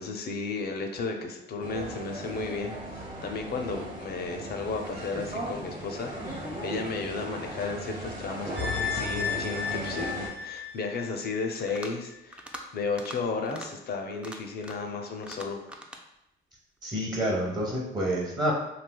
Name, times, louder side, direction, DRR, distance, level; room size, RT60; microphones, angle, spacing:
voice 1, 0.0-2.7 3.2-12.5 12.7-15.6, left 4 dB, 55° left, 4 dB, 0.5 m, -33 dB
sound 1, 1.6-10.3, right 1 dB, 40° right, 1.0 m, -37 dB
sound 2, 8.6-11.8 12.1-12.2, left 6 dB, 70° right, 0.8 m, -33 dB
sound 3, 11.6-12.0 12.3-12.6 12.9-13.2 13.4-13.7 14.1-14.9 15.2-16.0, equal, 5° right, 0.3 m, -43 dB
voice 2, 16.8-18.5, right 1 dB, 20° right, -3 dB, 0.7 m, -28 dB
3.2 x 2.7 x 2.2 m, 0.85 s
cardioid pair, 90°, 20 cm